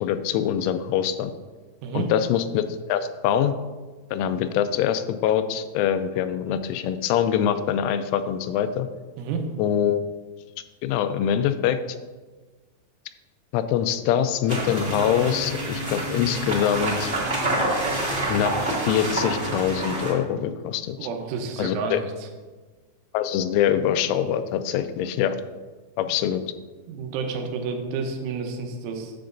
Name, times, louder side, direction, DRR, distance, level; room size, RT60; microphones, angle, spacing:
voice 1, 0.0-1.3 1.9-3.5 4.1-8.9 9.6-10.0 10.8-11.8 13.5-17.1 18.3-21.0 21.6-22.0 23.1-25.4 26.0-26.4, left 9 dB, 85° left, 11 dB, 3.0 m, -24 dB
sound 1, 14.5-20.1, right 1 dB, 30° right, 1.3 m, -27 dB
voice 2, 21.0-22.3 26.9-29.1, right 5 dB, 80° right, 3 dB, 3.4 m, -30 dB
10.5 x 7.8 x 2.6 m, 1.3 s
omnidirectional pair, 5.5 m